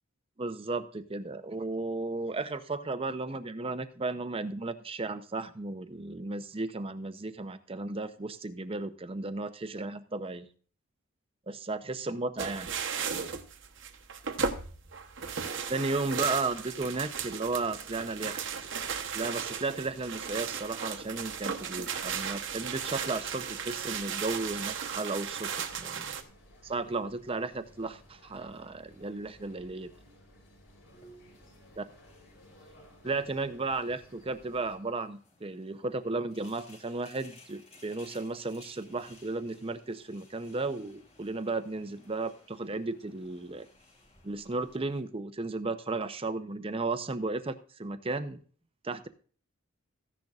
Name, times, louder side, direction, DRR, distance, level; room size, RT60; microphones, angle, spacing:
voice 1, 0.4-10.5 11.5-12.7 15.7-18.4 19.1-26.1 26.6-29.9 31.8-31.9 33.0-43.7 44.2-48.4 48.8-49.1, right 3 dB, 25° right, 11 dB, 0.6 m, -34 dB
sound 1, 12.4-26.2, right 6 dB, 60° right, 1.0 m, -36 dB
sound 2, 16.8-34.8, left 1 dB, 70° left, 3.9 m, -57 dB
sound 3, 30.9-45.0, left 2 dB, 30° left, 2.5 m, -59 dB
14.5 x 10.5 x 2.4 m, 0.42 s
head